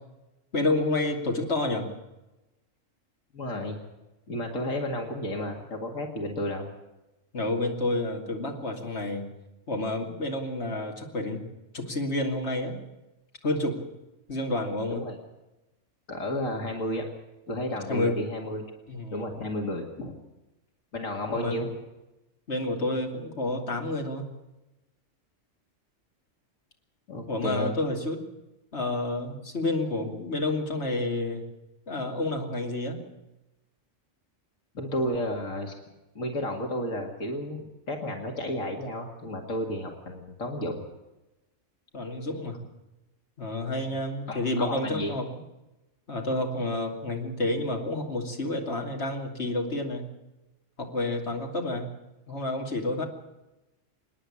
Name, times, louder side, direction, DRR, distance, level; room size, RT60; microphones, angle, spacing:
voice 1, 0.5-1.9 7.3-9.3 9.7-11.4 11.7-12.8 13.4-13.8 14.3-15.0 17.9-18.2 18.9-19.3 21.3-21.6 22.5-24.3 27.3-28.2 28.7-31.4 31.9-33.0 41.9-42.6 43.4-45.3 46.1-50.1 50.8-51.9 52.3-53.1, left 2 dB, 55° left, 1 dB, 3.0 m, -29 dB
voice 2, 3.3-3.8 4.3-6.7 14.9-15.2 16.1-17.1 17.5-18.7 19.1-20.1 20.9-21.7 27.1-27.7 34.7-35.7 36.1-40.8 44.3-45.1, left 1 dB, 80° left, 2 dB, 2.5 m, -32 dB
26.5 x 10.0 x 9.9 m, 0.99 s
omnidirectional pair, 1.4 m